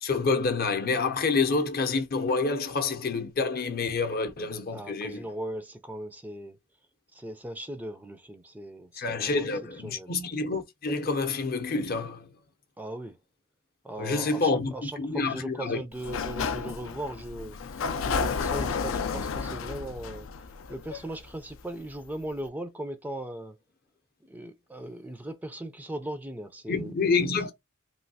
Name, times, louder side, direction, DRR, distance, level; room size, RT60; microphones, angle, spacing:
voice 1, 0.0-5.3 9.0-12.3 14.0-15.8 26.7-27.5, left 4 dB, 50° left, 0.6 m, -28 dB
voice 2, 4.7-6.6 7.1-9.5 9.8-10.1 12.8-13.2 13.8-20.3 20.7-23.6 24.3-27.3, right 1 dB, 10° right, 0.4 m, -38 dB
Sliding door, 15.9-21.6, left 5 dB, 90° left, 0.4 m, -32 dB
3.1 x 2.6 x 2.7 m
head